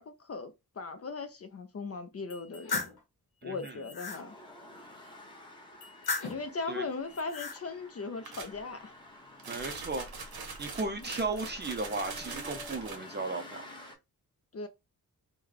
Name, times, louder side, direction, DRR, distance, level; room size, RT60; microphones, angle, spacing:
voice 1, 0.0-2.8 3.4-4.4 6.3-8.9 10.8-11.1 14.5-14.7, left 4 dB, 40° left, 0.4 m, -38 dB
sound 1, 2.3-3.0 3.6-4.2 5.8-6.5 7.1-7.6, left 4 dB, 75° left, 1.0 m, -36 dB
voice 2, 3.4-3.8 6.7-6.8 9.5-10.1 10.6-13.7, right 3 dB, 30° right, 0.5 m, -35 dB
sound 2, 4.1-14.0, left 1 dB, 10° left, 0.9 m, -51 dB
sound 3, 8.2-8.6 9.4-13.0, right 4 dB, 75° right, 0.8 m, -42 dB
3.1 x 2.2 x 3.7 m
wide cardioid pair, 160°, 37 cm